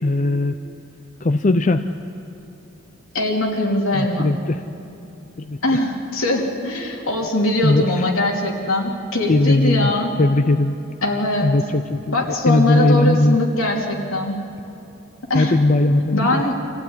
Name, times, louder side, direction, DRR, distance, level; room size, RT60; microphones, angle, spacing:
voice 1, 0.0-0.5 1.2-1.9 3.9-4.6 5.4-5.6 7.6-8.0 9.3-9.9 10.2-10.7 11.4-13.4 15.3-16.4, left 2 dB, 35° left, 7 dB, 0.5 m, -18 dB
voice 2, 3.1-4.4 5.6-10.1 11.0-11.5 12.1-14.3 15.3-15.5 16.1-16.6, left 1 dB, 75° left, -1 dB, 3.2 m, -21 dB
25.5 x 15.5 x 9.8 m, 2.9 s
head